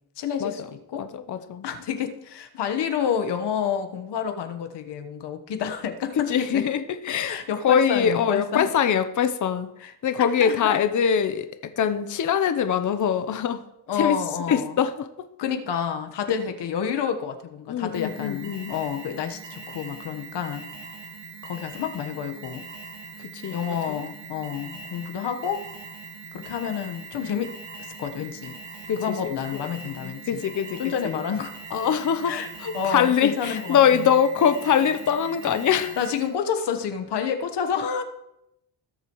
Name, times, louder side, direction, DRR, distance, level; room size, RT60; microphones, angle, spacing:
voice 1, 0.2-1.0 1.6-6.6 7.2-8.7 9.8-9.9 10.2-10.8 13.9-14.8 15.4-20.6 21.4-22.6 23.5-25.6 26.3-27.5 28.0-28.5 29.0-30.4 30.8-31.5 32.2-32.5 32.7-34.1 36.0-38.0, left 7 dB, 70° left, 6 dB, 1.3 m, -29 dB
voice 2, 1.0-1.7 6.3-7.4 7.6-13.6 13.9-14.2 14.5-15.3 17.7-18.7 23.2-23.6 23.9-24.0 28.9-29.6 29.9-31.2 31.7-36.0, left 8 dB, 45° left, 9 dB, 0.8 m, -23 dB
Alarm, 17.9-36.3, right 4 dB, 90° right, 2.0 m, -41 dB
18.0 x 6.8 x 3.1 m, 0.82 s
cardioid pair, 90°, 42 cm